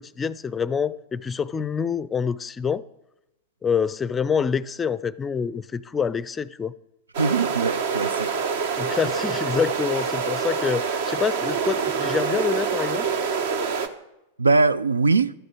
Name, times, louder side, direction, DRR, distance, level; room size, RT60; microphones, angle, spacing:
voice 1, 0.0-2.8 3.6-6.7 8.8-13.1, left 6 dB, 20° left, 0.4 m, -26 dB
sound 1, 7.1-13.9, right 6 dB, 55° right, 1.0 m, -26 dB
voice 2, 7.2-8.3 14.4-15.3, right 4 dB, 80° right, 0.4 m, -21 dB
12.5 x 7.8 x 6.9 m
figure-of-eight pair, 95°, 0 cm